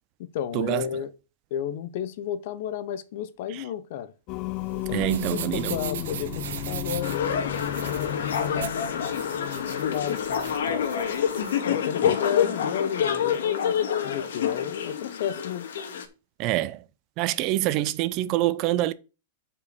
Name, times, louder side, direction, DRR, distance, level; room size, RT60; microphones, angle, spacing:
voice 1, 0.2-1.1 1.5-4.1 4.7-7.2 7.8-10.9 11.3-13.7 14.0-15.7, left 9 dB, 50° left, 0.8 m, -32 dB
Singing, 4.3-9.7, left 16 dB, 30° left, 0.3 m, -34 dB
sound 1, 4.5-11.6, right 9 dB, 75° right, 1.3 m, -39 dB
voice 2, 4.9-5.8 12.0-12.1 16.4-16.8 17.2-18.9, right 15 dB, 30° right, 0.5 m, -25 dB
sound 2, 7.0-16.0, left 8 dB, 85° left, 1.9 m, -27 dB
6.6 x 5.6 x 6.6 m
supercardioid pair, 170°, 0 cm